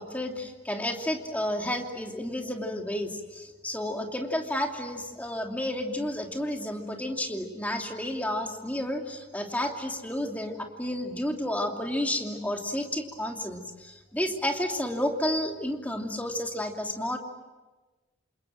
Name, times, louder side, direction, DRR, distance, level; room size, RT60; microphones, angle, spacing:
voice 1, 0.0-17.2, left 1 dB, 10° left, 2 dB, 2.9 m, -31 dB
28.5 x 27.5 x 7.6 m, 1.2 s
head